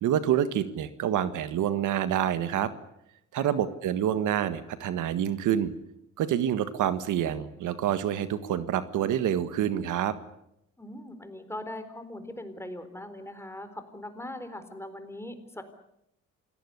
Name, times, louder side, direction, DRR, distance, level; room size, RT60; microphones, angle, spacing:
voice 1, 0.0-2.7 3.3-5.7 6.2-10.1, right 10 dB, 85° right, 11 dB, 1.6 m, -27 dB
voice 2, 10.8-15.6, left 1 dB, 10° left, 9 dB, 4.2 m, -40 dB
27.5 x 18.5 x 8.2 m, 0.80 s
cardioid pair, 90°, 30 cm